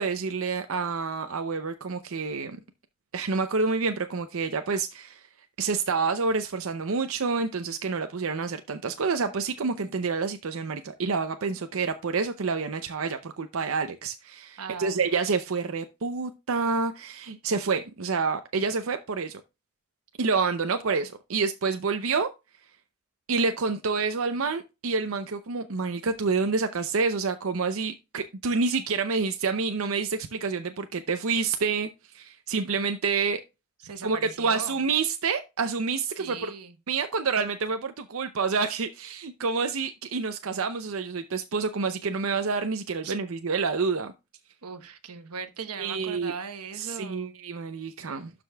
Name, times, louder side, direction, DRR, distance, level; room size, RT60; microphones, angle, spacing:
voice 1, 0.0-2.6 3.1-5.3 5.6-19.4 20.2-22.3 23.3-33.4 34.0-36.4 36.9-44.1 45.8-46.3 46.7-48.3, right 4 dB, 65° right, 0.6 m, -28 dB
voice 2, 14.6-15.0 33.8-34.8 36.2-36.8 43.0-43.2 44.6-47.3, right 5 dB, 90° right, 1.1 m, -38 dB
12.0 x 5.1 x 2.3 m
head